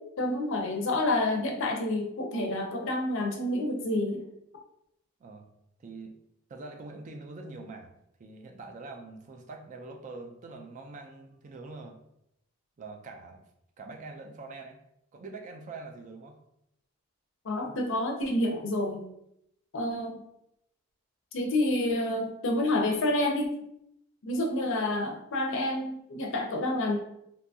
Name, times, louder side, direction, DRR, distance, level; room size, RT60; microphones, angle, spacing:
voice 1, 0.2-4.3 17.4-19.0 19.7-20.2 21.3-23.5 24.2-27.0, left 1 dB, 60° left, 2 dB, 0.5 m, -28 dB
voice 2, 5.8-6.1 6.5-7.9 8.2-12.0 12.8-13.4 13.8-14.8 15.1-16.4, right 3 dB, 35° right, 4 dB, 0.3 m, -44 dB
2.6 x 2.3 x 2.6 m, 0.78 s
head